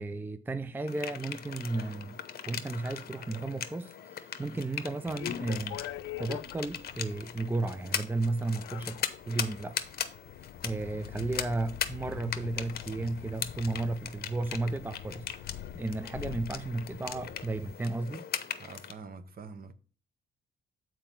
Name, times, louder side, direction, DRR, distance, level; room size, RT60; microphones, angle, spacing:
voice 1, 0.0-2.2 2.5-5.8 6.2-9.8 10.6-18.3, right 2 dB, 10° right, 0.4 m, -34 dB
sound 1, 0.9-18.9, left 8 dB, 50° left, 0.8 m, -40 dB
sound 2, 5.0-17.7, left 13 dB, 85° left, 0.5 m, -45 dB
voice 2, 18.6-19.7, right 4 dB, 50° right, 0.9 m, -45 dB
7.1 x 4.5 x 5.7 m
cardioid pair, 90°, 20 cm